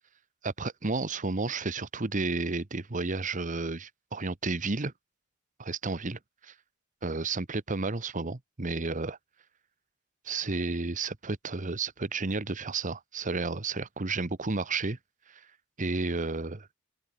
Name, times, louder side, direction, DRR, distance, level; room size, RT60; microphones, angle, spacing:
voice 1, 0.4-4.9 5.6-6.5 7.0-9.2 10.2-15.0 15.3-15.4 15.8-16.7, right 3 dB, 35° right, 1.1 m, -32 dB
open air
head